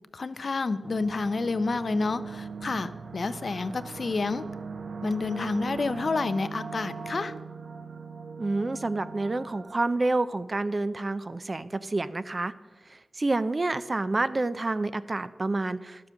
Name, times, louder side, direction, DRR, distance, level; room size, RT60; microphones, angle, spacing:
voice 1, 0.1-4.4 5.0-7.3, left 3 dB, 55° left, 0.5 m, -29 dB
sound 1, 0.8-10.6, right 5 dB, 80° right, 0.6 m, -40 dB
voice 2, 8.4-12.5 13.2-16.1, right 2 dB, 35° right, 0.5 m, -28 dB
12.0 x 7.6 x 6.3 m
wide cardioid pair, 110°, 0 cm